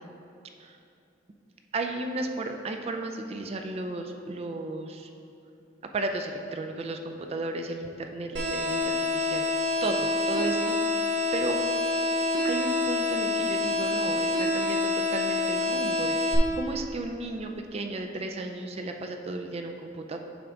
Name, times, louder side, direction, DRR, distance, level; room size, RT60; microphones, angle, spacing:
voice 1, 1.7-5.1 5.9-10.7 11.3-11.6 12.4-20.2, right 2 dB, 35° right, 4 dB, 0.4 m, -34 dB
sound 1, 8.4-16.4, left 2 dB, 65° right, 1.0 m, -27 dB
7.7 x 5.0 x 3.5 m, 2.6 s
head